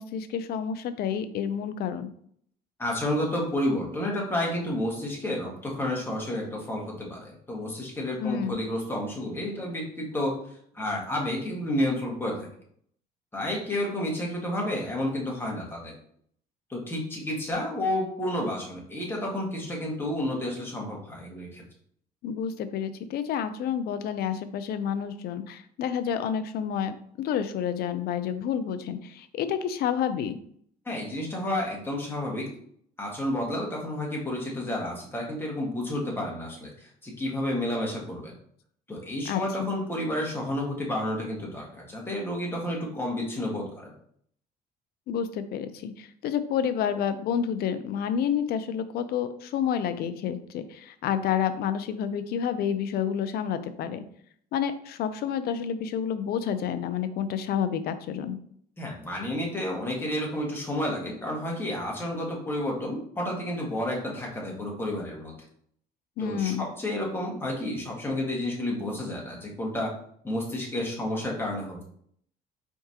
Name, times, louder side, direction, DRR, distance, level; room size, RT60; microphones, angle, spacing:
voice 1, 0.0-2.1 8.2-8.6 22.2-30.4 39.2-39.7 45.1-54.0 54.5-58.4 66.2-66.6, left 8 dB, 65° left, 11 dB, 0.5 m, -29 dB
voice 2, 2.8-10.3 10.7-12.5 13.3-15.9 16.7-21.6 30.8-32.4 33.0-36.7 37.0-38.3 38.9-43.9 58.8-65.3 66.2-69.9 70.2-71.8, left 1 dB, 15° left, -2 dB, 1.5 m, -30 dB
4.6 x 3.6 x 2.8 m, 0.64 s
cardioid pair, 110°, 17 cm